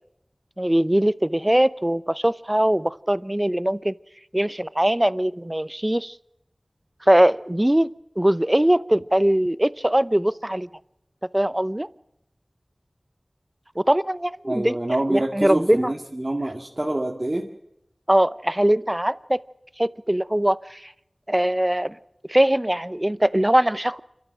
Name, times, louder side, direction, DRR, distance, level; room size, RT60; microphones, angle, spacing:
voice 1, 0.6-4.0 4.3-6.1 7.0-7.9 8.2-10.7 11.3-11.9 13.8-14.8 15.1-15.9 18.1-19.4 19.8-20.9 21.3-22.0 22.3-24.0, right 1 dB, 20° right, 17 dB, 0.7 m, -21 dB
voice 2, 14.4-17.4, right 1 dB, 40° right, 0 dB, 2.1 m, -26 dB
28.5 x 12.5 x 7.7 m, 0.83 s
wide cardioid pair, 40°, 0 cm